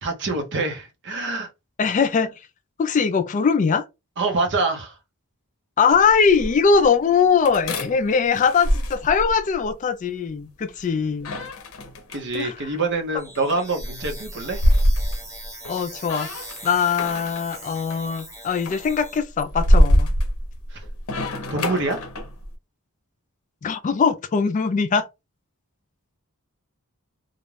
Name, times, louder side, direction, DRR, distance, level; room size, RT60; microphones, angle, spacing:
voice 1, 0.0-1.5 4.2-5.0 12.1-14.6 20.7-20.8 21.5-22.0, right 3 dB, 55° right, 0.7 m, -25 dB
voice 2, 1.8-2.3 2.8-3.8 5.8-11.3 12.3-12.6 15.7-16.3 16.6-20.1 23.6-25.1, left 5 dB, 35° left, 0.3 m, -21 dB
sound 1, 5.9-6.8 7.4-9.7 11.2-12.4 13.1-15.8 16.1-17.6 17.9-18.3 18.6-22.5, equal, 65° left, 0.7 m, -24 dB
sound 2, 13.2-19.2, right 1 dB, 15° right, 0.9 m, -41 dB
2.4 x 2.1 x 3.1 m
head